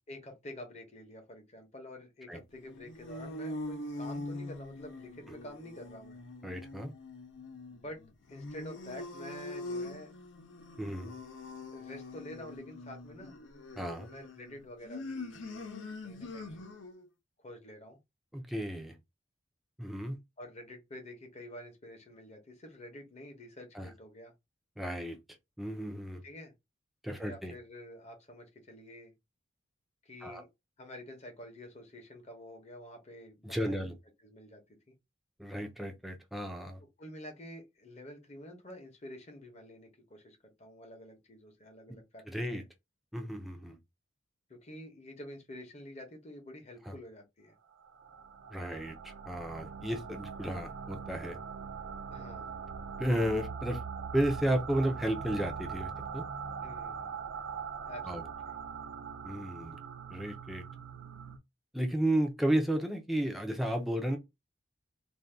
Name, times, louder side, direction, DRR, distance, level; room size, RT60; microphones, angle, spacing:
voice 1, 0.1-6.2 7.8-8.0 8.3-10.1 11.7-13.4 14.1-16.7 17.4-18.0 20.4-24.3 26.2-26.5 27.1-29.1 30.0-30.5 30.8-33.9 34.2-34.6 34.9-35.0 37.0-42.4 44.5-47.6 52.1-52.5 56.6-57.2 57.9-58.5, left 1 dB, 35° left, 0.8 m, -48 dB
sound 1, 2.6-17.1, left 2 dB, 70° left, 0.6 m, -43 dB
voice 2, 6.4-6.9 10.8-11.2 13.8-14.1 18.3-19.0 19.8-20.2 23.7-23.9 24.8-25.2 25.6-26.2 27.0-27.5 30.2-30.4 33.4-33.9 35.4-36.8 42.3-42.6 43.1-43.8 46.9-47.0 48.5-51.4 53.0-53.8 54.1-56.2 58.1-58.2 59.2-59.8 60.1-60.6 61.7-64.2, right 1 dB, ahead, 0.5 m, -33 dB
sound 2, 47.8-61.4, right 6 dB, 80° right, 0.4 m, -42 dB
2.6 x 2.2 x 3.3 m
head